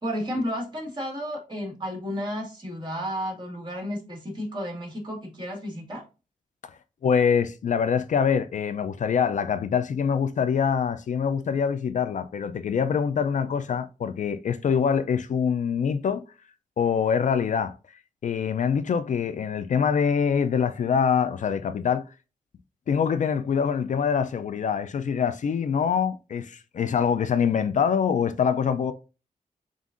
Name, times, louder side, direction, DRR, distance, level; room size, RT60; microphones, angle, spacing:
voice 1, 0.0-6.0, equal, 30° right, 2.0 m, -32 dB
voice 2, 7.0-16.2 16.8-17.7 18.2-22.1 22.9-28.9, left 7 dB, 60° left, 0.4 m, -24 dB
7.1 x 2.5 x 2.5 m
wide cardioid pair, 90°, 15 cm